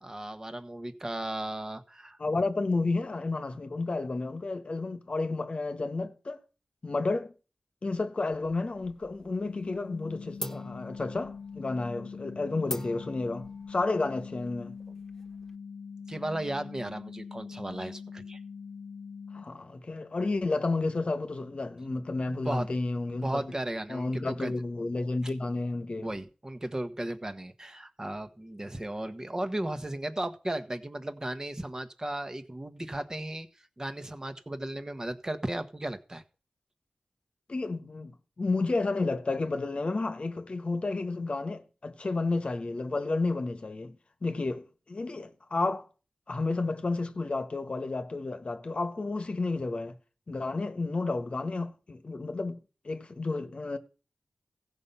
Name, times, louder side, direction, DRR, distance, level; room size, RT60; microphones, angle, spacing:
voice 1, 0.0-2.5 16.1-18.4 22.4-22.7 23.1-24.5 26.0-33.5 33.8-36.2, right 1 dB, 25° right, 1.2 m, -35 dB
voice 2, 2.2-6.4 6.8-7.3 7.8-14.8 19.3-23.5 23.9-26.1 37.5-44.0 44.2-45.9 46.3-49.9 50.3-52.6 52.8-53.8, left 3 dB, 50° left, 1.1 m, -31 dB
sound 1, 8.4-9.3 9.6-10.0 10.4-15.5, left 1 dB, 20° left, 1.3 m, -43 dB
sound 2, 9.4-19.4, left 5 dB, 90° left, 0.5 m, -43 dB
15.5 x 5.4 x 5.7 m
cardioid pair, 55°, 2 cm